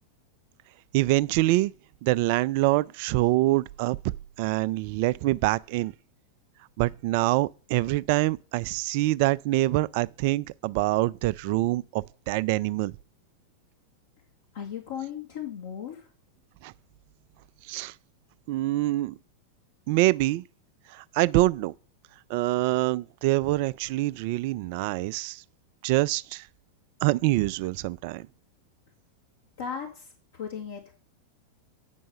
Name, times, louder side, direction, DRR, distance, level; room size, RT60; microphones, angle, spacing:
voice 1, 0.9-1.7 2.0-5.9 6.8-12.9 16.6-16.7 17.7-17.9 18.5-19.2 19.9-20.4 20.9-21.7 22.3-25.4 25.8-26.5 27.0-28.3, right 18 dB, 45° right, 0.3 m, -25 dB
voice 2, 14.5-16.1 29.6-31.0, left 8 dB, 60° left, 1.8 m, -37 dB
8.9 x 5.4 x 5.4 m
figure-of-eight pair, 90°, 0 cm